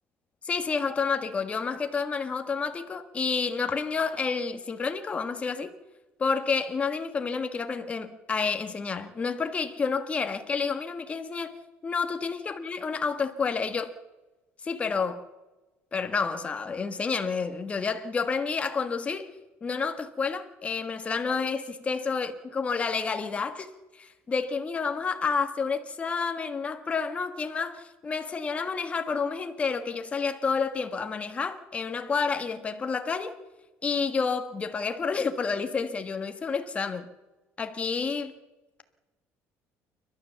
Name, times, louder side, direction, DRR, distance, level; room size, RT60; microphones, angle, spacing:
voice 1, 0.4-5.7 6.2-11.5 11.8-13.9 14.6-15.2 15.9-19.3 19.6-23.7 24.0-33.4 33.8-37.1 37.6-38.3, left 5 dB, 25° left, 1.6 m, -29 dB
29.5 x 12.5 x 7.1 m
cardioid pair, 150°, 6 cm